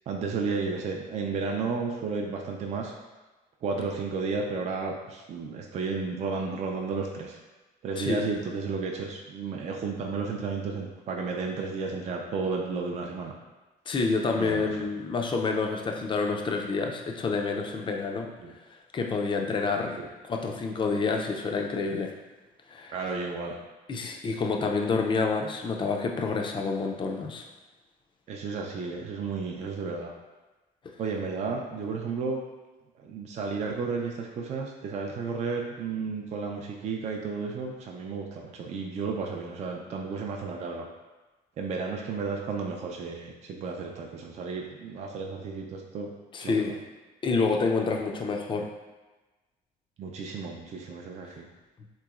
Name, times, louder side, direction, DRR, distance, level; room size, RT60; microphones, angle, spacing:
voice 1, 0.1-2.9 3.6-7.4 7.8-13.3 14.3-14.8 18.4-18.5 20.0-20.1 22.9-23.6 28.3-30.1 31.0-32.4 33.0-40.9 41.6-46.1 46.4-46.6 50.0-51.5, right 4 dB, 40° right, 0 dB, 0.4 m, -33 dB
voice 2, 8.0-8.3 13.9-18.3 18.9-22.1 22.7-22.9 23.9-27.4 46.3-46.8 47.2-48.7, left 4 dB, 30° left, 2 dB, 0.4 m, -28 dB
3.5 x 3.0 x 2.4 m, 1.2 s
cardioid pair, 110°, 17 cm